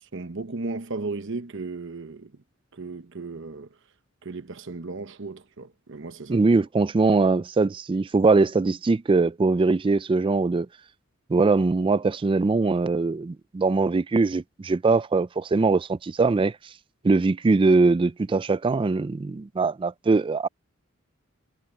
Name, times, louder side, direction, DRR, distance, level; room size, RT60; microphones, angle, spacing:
voice 1, 0.0-2.3 2.7-3.7 4.2-6.4, right 3 dB, 65° right, 1.0 m, -35 dB
voice 2, 6.3-10.7 11.3-16.6 17.0-20.5, right 3 dB, 25° right, 0.3 m, -22 dB
head